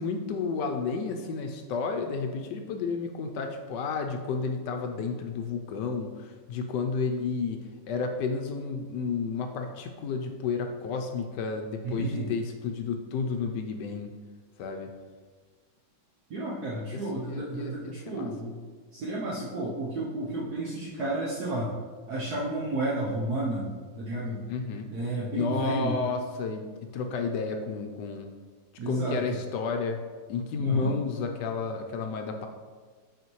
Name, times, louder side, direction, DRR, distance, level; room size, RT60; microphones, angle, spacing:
voice 1, 0.0-14.1 14.6-14.9 16.9-18.3 24.5-24.9 25.3-26.6 26.9-28.3 28.9-30.0 30.3-32.5, left 4 dB, 75° left, 5 dB, 1.1 m, -31 dB
voice 2, 11.8-12.3 16.3-18.6 18.9-21.7 22.1-24.4 24.9-26.0 28.8-29.2 30.6-30.9, right 2 dB, 60° right, -5 dB, 1.2 m, -32 dB
8.1 x 4.3 x 3.1 m, 1.5 s
omnidirectional pair, 2.0 m